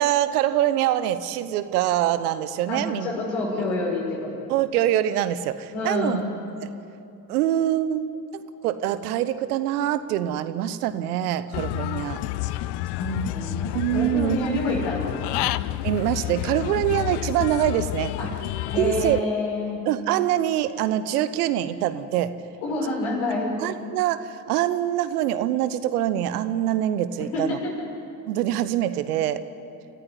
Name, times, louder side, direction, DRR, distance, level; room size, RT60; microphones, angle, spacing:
voice 1, 0.0-3.1 4.5-6.2 6.6-6.7 7.3-8.1 8.6-12.2 13.7-14.6 15.8-18.1 18.8-19.2 19.9-22.3 23.6-27.6 28.3-29.4, right 12 dB, 75° right, 13 dB, 1.1 m, -24 dB
voice 2, 2.7-4.3 5.7-6.3 13.0-15.5 18.2-18.4 18.7-19.8 22.6-23.6 27.3-27.7, left 2 dB, 75° left, -2 dB, 6.4 m, -28 dB
Human voice / Bird, 11.5-19.2, left 16 dB, 60° left, 0.7 m, -29 dB
29.0 x 14.5 x 9.9 m, 2.7 s
hypercardioid pair, 50°, 45 cm